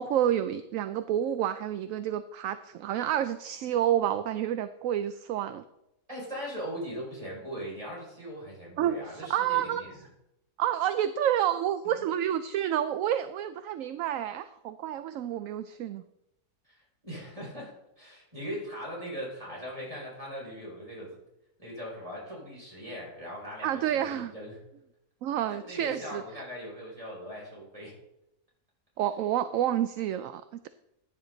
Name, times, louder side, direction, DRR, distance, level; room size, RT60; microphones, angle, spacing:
voice 1, 0.0-5.6 8.8-9.8 10.6-16.0 23.6-24.3 25.2-26.2 29.0-30.7, right 11 dB, 70° right, 12 dB, 0.9 m, -29 dB
voice 2, 6.1-10.0 16.6-21.2 21.6-24.6 25.5-27.9, equal, 20° right, -5 dB, 5.8 m, -40 dB
15.0 x 9.8 x 3.9 m, 0.85 s
omnidirectional pair, 1.6 m